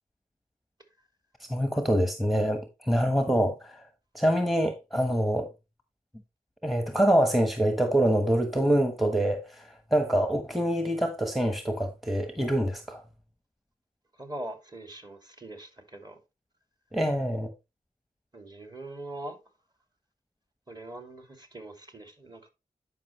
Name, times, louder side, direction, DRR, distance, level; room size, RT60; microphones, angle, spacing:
voice 1, 1.5-3.8 4.1-5.5 6.6-13.0 16.9-17.5, right 1 dB, ahead, 1.1 m, -25 dB
voice 2, 14.1-16.2 18.3-19.4 20.7-22.5, right 1 dB, 30° right, 2.5 m, -42 dB
10.5 x 5.3 x 3.1 m
cardioid pair, 45°, 15 cm